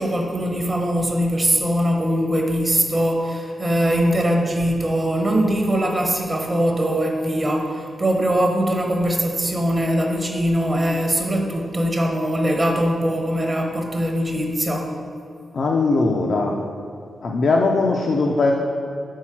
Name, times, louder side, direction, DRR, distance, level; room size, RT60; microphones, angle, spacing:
voice 1, 0.0-14.9, equal, 25° right, 1 dB, 0.7 m, -21 dB
voice 2, 15.5-16.6 17.2-18.5, left 3 dB, 60° left, 0 dB, 0.4 m, -19 dB
4.6 x 4.1 x 5.8 m, 2.5 s
wide cardioid pair, 110°, 0 cm